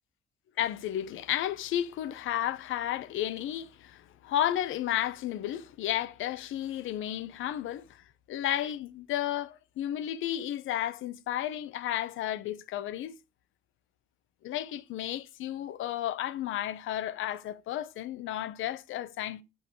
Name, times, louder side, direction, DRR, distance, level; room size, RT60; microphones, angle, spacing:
voice 1, 0.6-13.1 14.4-19.4, left 12 dB, 85° left, 0.9 m, -33 dB
8.5 x 5.5 x 4.6 m
cardioid pair, 90°, 20 cm